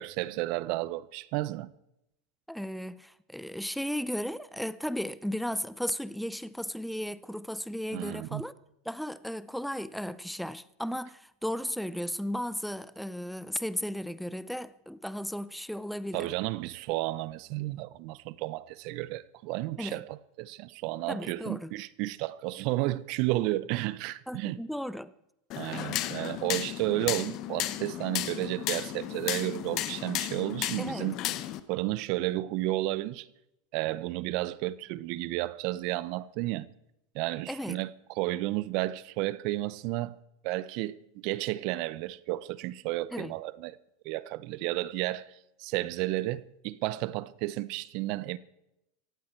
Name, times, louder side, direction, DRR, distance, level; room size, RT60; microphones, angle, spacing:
voice 1, 0.0-1.7 7.9-8.4 16.1-24.6 25.6-31.2 31.7-33.3 33.7-36.7 37.1-37.9 38.2-40.1 40.4-43.8 44.0-48.4, right 17 dB, 55° right, 0.7 m, -32 dB
voice 2, 2.5-8.5 8.9-16.3 19.8-20.0 21.1-21.7 24.3-25.1 30.8-31.1 37.5-37.8 43.1-43.3, equal, ahead, 0.5 m, -35 dB
sound 1, 25.5-31.6, left 13 dB, 50° left, 1.0 m, -34 dB
18.0 x 15.0 x 4.5 m
hypercardioid pair, 115°, 0 cm